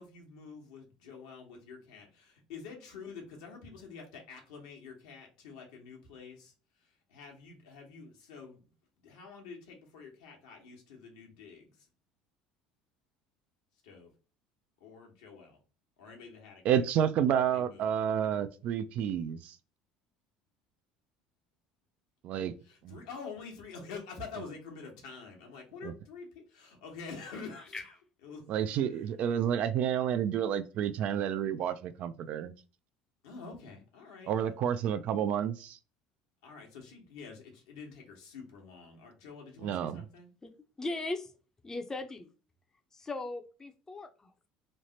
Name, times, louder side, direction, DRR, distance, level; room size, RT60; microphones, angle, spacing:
voice 1, 0.0-6.5 7.1-8.6 9.0-11.9 13.8-14.1 14.8-15.6 16.0-16.6 17.5-17.9 22.6-27.9 28.2-28.4 28.9-29.0 33.2-34.6 36.4-40.3, left 5 dB, 80° left, 1.0 m, -47 dB
voice 2, 16.6-19.6 22.2-22.5 22.8-23.0 25.8-25.9 28.5-32.5 34.3-35.8 39.6-40.1, right 9 dB, 60° right, 0.3 m, -30 dB
voice 3, 40.8-41.3 41.6-42.3 42.9-44.5, left 2 dB, 20° left, 0.5 m, -38 dB
3.1 x 2.0 x 2.7 m
hypercardioid pair, 75°, 3 cm